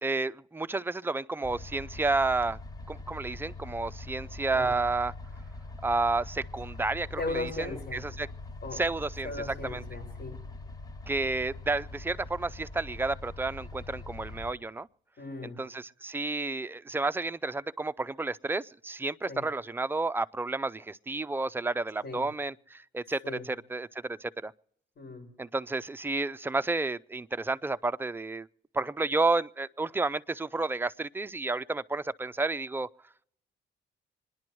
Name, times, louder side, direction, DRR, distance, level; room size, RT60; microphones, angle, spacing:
voice 1, 0.0-2.6 2.9-5.1 5.8-7.5 7.9-8.3 8.7-9.3 9.6-9.8 11.1-14.9 15.6-23.2 23.5-24.5 25.4-28.5 28.7-32.9, right 3 dB, 10° right, 0.4 m, -31 dB
sound 1, 1.4-14.5, left 2 dB, 20° left, 0.9 m, -43 dB
voice 2, 7.2-8.0 8.6-8.8 9.2-10.4 15.2-15.6 19.3-19.5 22.0-22.3 23.2-23.5 25.0-25.3, left 2 dB, 50° left, 5.8 m, -37 dB
26.0 x 10.5 x 3.1 m
cardioid pair, 90°, 20 cm